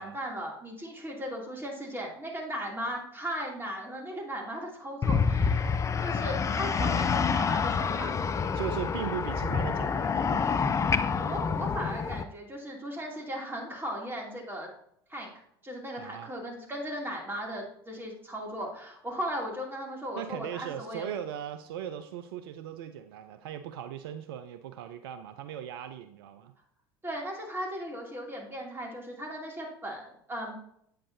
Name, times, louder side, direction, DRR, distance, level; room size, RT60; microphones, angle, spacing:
voice 1, 0.0-8.2 11.2-14.7 15.1-15.3 15.6-21.1 27.0-30.5, equal, 15° right, -1 dB, 2.7 m, -37 dB
sound 1, 5.0-12.2, left 5 dB, 25° left, 0.5 m, -27 dB
voice 2, 8.5-10.8 16.0-16.3 20.2-26.5, right 10 dB, 70° right, 10 dB, 0.5 m, -38 dB
8.6 x 6.7 x 2.7 m, 0.70 s
hypercardioid pair, 75°, 13 cm